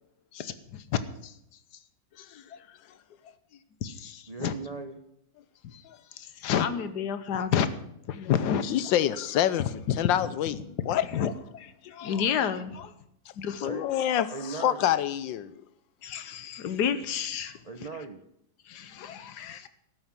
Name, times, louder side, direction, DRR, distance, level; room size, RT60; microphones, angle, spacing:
voice 1, 0.3-1.3 2.2-2.6 3.8-4.5 5.6-5.8 6.1-8.6 9.6-9.9 11.1-12.9 13.4-13.8 16.0-17.6 18.7-19.7, left 8 dB, 65° left, 1.4 m, -30 dB
voice 2, 4.3-5.0 13.6-13.9 14.3-14.9 17.6-18.2, right 4 dB, 65° right, 0.3 m, -38 dB
voice 3, 8.6-11.0 13.6-15.6 19.4-19.5, left 11 dB, 90° left, 1.4 m, -27 dB
12.0 x 9.2 x 7.4 m
omnidirectional pair, 2.0 m